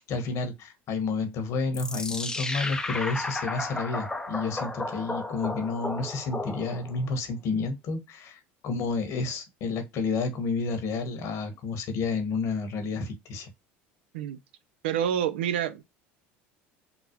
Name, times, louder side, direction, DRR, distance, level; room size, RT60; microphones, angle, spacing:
voice 1, 0.0-13.5, left 4 dB, 55° left, 1.1 m, -30 dB
sound 1, 1.7-7.0, left 2 dB, 10° left, 0.5 m, -33 dB
voice 2, 14.8-15.8, right 9 dB, 90° right, 0.4 m, -27 dB
3.9 x 2.0 x 2.8 m
supercardioid pair, 90°, 6 cm